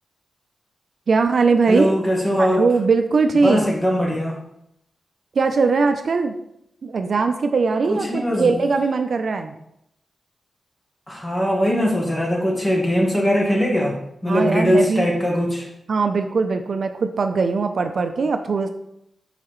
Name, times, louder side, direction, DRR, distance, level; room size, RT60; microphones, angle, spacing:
voice 1, 1.1-1.9 2.4-3.6 5.4-6.3 6.8-9.5 14.3-15.1 15.9-18.7, right 4 dB, 60° right, 7 dB, 0.4 m, -20 dB
voice 2, 1.7-2.6 3.4-4.4 7.8-8.5 11.1-14.0 14.2-15.7, equal, 15° left, -1 dB, 1.4 m, -20 dB
6.6 x 4.7 x 3.1 m, 0.79 s
wide cardioid pair, 125°, 0 cm